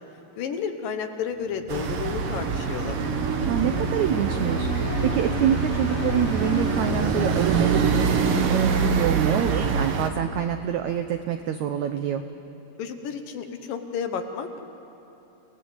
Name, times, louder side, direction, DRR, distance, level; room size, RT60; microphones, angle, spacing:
voice 1, 0.4-3.0 12.8-14.6, left 6 dB, 70° left, 6 dB, 2.8 m, -31 dB
sound 1, 1.5-8.8, left 2 dB, 50° left, 2.2 m, -34 dB
sound 2, 1.7-10.1, right 6 dB, 65° right, 1.5 m, -25 dB
voice 2, 3.5-12.2, right 9 dB, 85° right, 7 dB, 1.6 m, -26 dB
29.5 x 19.0 x 8.1 m, 3.0 s
omnidirectional pair, 4.4 m